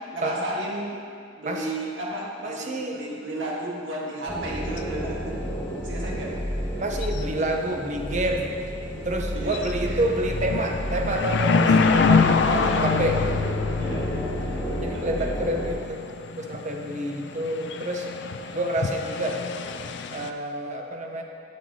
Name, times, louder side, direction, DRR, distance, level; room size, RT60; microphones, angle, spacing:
voice 1, 0.1-1.0 1.4-5.4 5.8-6.3 9.3-9.6 9.9-10.0 12.2-13.2 13.8-14.1 14.9-15.4, right 1 dB, 85° right, -3 dB, 1.6 m, -33 dB
voice 2, 2.4-3.0 6.8-8.5 9.0-13.2 14.8-16.0 16.4-18.1 18.5-19.4 20.1-21.2, right 1 dB, 40° right, 2 dB, 0.7 m, -28 dB
sound 1, 4.3-15.7, equal, 5° left, 1.7 m, -31 dB
sound 2, 4.4-4.5 4.8-4.9 7.0-7.4 7.7-7.8 8.3-8.6 9.1-9.2 9.4-20.3, left 5 dB, 65° left, 0.4 m, -26 dB
9.1 x 8.5 x 2.8 m, 2.3 s
head